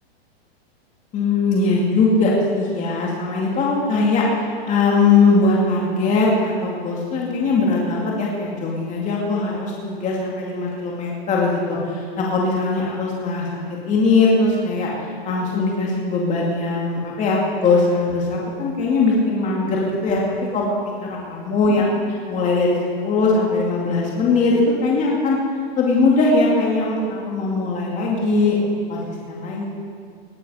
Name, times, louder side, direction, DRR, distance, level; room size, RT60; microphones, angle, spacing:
voice 1, 1.1-20.6 21.0-25.4 25.8-29.6, left 3 dB, 25° left, -3 dB, 2.3 m, -20 dB
19.0 x 10.0 x 5.6 m, 2.2 s
hypercardioid pair, 145°, 31 cm